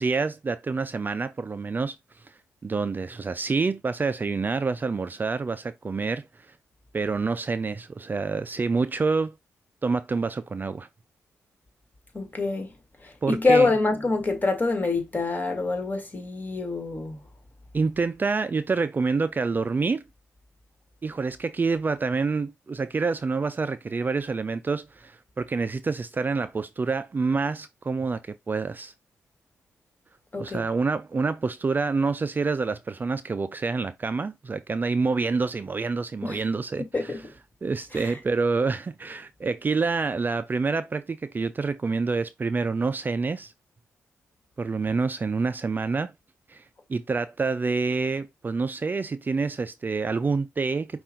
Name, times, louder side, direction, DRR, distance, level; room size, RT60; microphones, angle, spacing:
voice 1, 0.0-2.0 2.2-2.3 2.6-6.3 6.9-9.4 9.8-10.9 13.2-13.7 17.7-20.0 21.0-28.9 30.4-37.2 37.6-43.5 44.6-46.1 46.5-46.6 46.9-51.0, right 4 dB, 35° right, 0.4 m, -27 dB
voice 2, 12.1-12.7 13.0-17.2 30.3-30.6 36.2-36.4 36.8-37.2 37.9-38.1, left 3 dB, 30° left, 1.9 m, -25 dB
5.5 x 2.4 x 3.8 m
cardioid pair, 60°, 6 cm